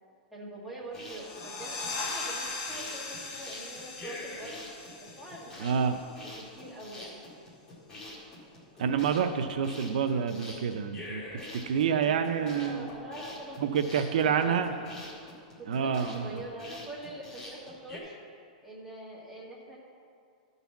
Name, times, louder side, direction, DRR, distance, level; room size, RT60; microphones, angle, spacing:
voice 1, 0.3-4.6 5.0-5.8 6.4-7.2 12.0-13.6 14.0-14.7 15.6-18.2 18.6-19.8, right 1 dB, ahead, -7 dB, 1.7 m, -44 dB
sound 1, 0.8-18.0, left 1 dB, 15° left, 1.9 m, -46 dB
sound 2, 1.0-6.4, left 3 dB, 40° left, 1.6 m, -39 dB
voice 2, 5.6-6.0 8.8-11.2 11.5-12.8 13.6-14.7 15.7-16.4, right 7 dB, 75° right, 7 dB, 0.5 m, -28 dB
12.0 x 4.1 x 7.0 m, 2.3 s
supercardioid pair, 160°, 4 cm